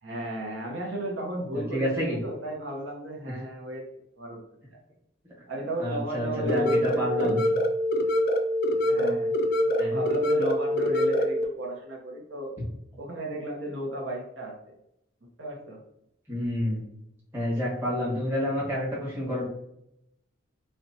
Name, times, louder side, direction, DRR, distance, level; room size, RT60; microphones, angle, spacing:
voice 1, 0.0-3.8 4.2-4.4 5.5-7.4 8.9-9.3 9.6-12.5 13.0-14.6 15.4-15.8, right 1 dB, 75° right, 0 dB, 0.7 m, -34 dB
voice 2, 1.5-2.2 5.8-7.4 9.0-9.1 9.8-10.0 16.3-16.8 17.3-19.4, equal, 10° right, -7 dB, 1.2 m, -29 dB
sound 1, 6.4-11.4, equal, 50° left, 0.3 m, -25 dB
4.1 x 2.1 x 2.7 m, 0.77 s
head